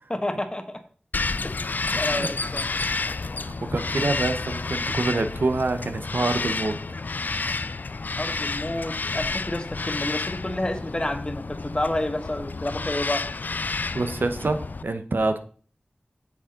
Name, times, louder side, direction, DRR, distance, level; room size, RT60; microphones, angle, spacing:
voice 1, 0.1-0.8 1.4-1.5 1.9-2.7 8.2-13.2, left 1 dB, 25° left, 7 dB, 1.3 m, -29 dB
Bird vocalization bird call bird song, 1.1-14.8, left 3 dB, 60° left, 0.3 m, -30 dB
voice 2, 1.9-2.3 3.4-6.8 13.9-15.4, right 3 dB, 80° right, 9 dB, 0.9 m, -26 dB
8.4 x 6.2 x 3.8 m, 0.43 s
wide cardioid pair, 55°, 3 cm